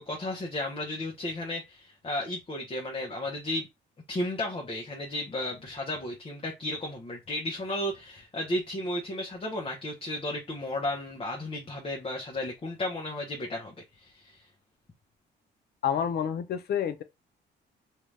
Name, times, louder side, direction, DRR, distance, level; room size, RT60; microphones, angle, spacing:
voice 1, 0.0-3.7 4.1-14.4, left 1 dB, 30° left, 0.8 m, -34 dB
voice 2, 15.8-17.0, left 8 dB, 55° left, 0.5 m, -28 dB
2.8 x 2.3 x 3.2 m
cardioid pair, 90°, 20 cm